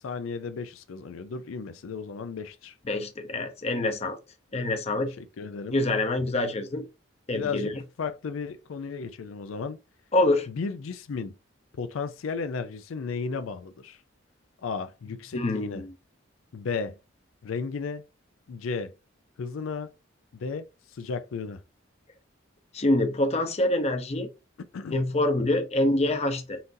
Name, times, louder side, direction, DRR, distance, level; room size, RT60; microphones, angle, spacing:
voice 1, 0.0-2.7 5.2-5.8 6.3-6.4 7.3-7.7 8.0-9.8 10.5-11.4 11.8-14.0 14.6-15.8 16.5-17.0 17.4-18.0 18.5-18.9 19.4-19.9 20.3-20.7 20.9-21.6 24.7-25.0, left 5 dB, 85° left, 0.4 m, -34 dB
voice 2, 2.9-4.2 4.5-5.1 5.7-6.8 7.3-7.7 10.1-10.5 15.3-15.9 22.7-24.3 24.9-26.6, left 2 dB, 30° left, 0.6 m, -25 dB
5.7 x 2.6 x 2.6 m
head